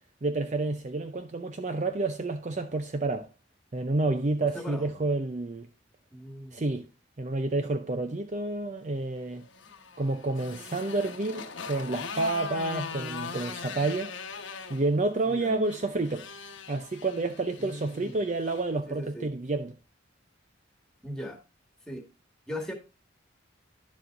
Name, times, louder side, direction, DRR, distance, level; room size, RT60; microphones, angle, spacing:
voice 1, 0.2-3.3 3.7-5.7 6.5-6.9 7.2-9.5 10.0-14.1 14.7-16.3 16.7-19.8, right 2 dB, 40° right, 0.5 m, -29 dB
voice 2, 4.5-4.9 6.1-6.7 15.2-15.6 17.6-18.2 18.9-19.3 21.0-21.4 21.9-22.1 22.5-22.7, equal, 5° left, 1.8 m, -39 dB
Motorcycle, 9.3-18.7, left 5 dB, 75° left, 1.2 m, -41 dB
11.0 x 7.3 x 2.5 m
head